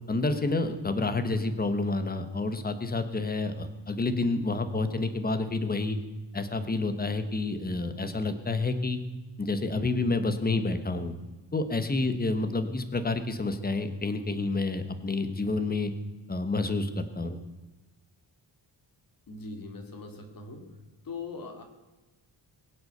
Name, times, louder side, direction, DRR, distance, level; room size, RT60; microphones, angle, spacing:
voice 1, 0.1-6.0 6.3-9.0 9.4-11.1 11.5-15.9 16.3-17.4, left 3 dB, 20° left, 10 dB, 1.1 m, -29 dB
voice 2, 19.3-20.8 21.0-21.6, left 4 dB, 45° left, 5 dB, 2.5 m, -41 dB
22.0 x 7.9 x 6.7 m, 1.1 s
wide cardioid pair, 165°, 46 cm